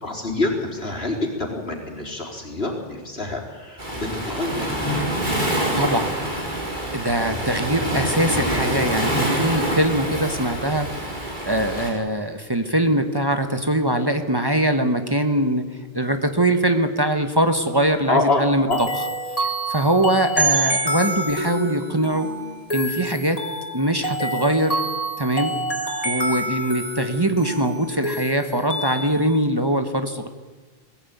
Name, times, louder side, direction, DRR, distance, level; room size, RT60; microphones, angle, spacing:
voice 1, 0.0-4.8 18.1-18.8, left 2 dB, 75° left, 1 dB, 4.3 m, -26 dB
Waves surf, 3.8-11.9, right 1 dB, 50° right, 4.4 m, -26 dB
voice 2, 5.7-6.1 6.9-15.6 15.9-19.0 19.4-22.3 22.7-23.4 23.7-24.8 25.2-25.5 26.0-30.3, right 1 dB, 25° right, 7 dB, 1.3 m, -22 dB
sound 1, 18.7-29.4, right 1 dB, 35° left, 3.4 m, -27 dB
21.5 x 16.0 x 9.4 m, 1.3 s
omnidirectional pair, 1.0 m